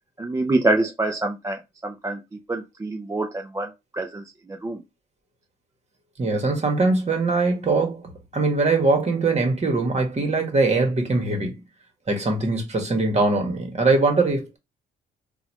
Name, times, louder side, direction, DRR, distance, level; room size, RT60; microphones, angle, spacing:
voice 1, 0.2-2.2 2.5-4.8, right 2 dB, 15° right, 0.5 m, -26 dB
voice 2, 6.2-11.6 12.1-14.6, right 3 dB, 35° right, 1.4 m, -22 dB
3.9 x 2.4 x 2.9 m
cardioid pair, 90°, 20 cm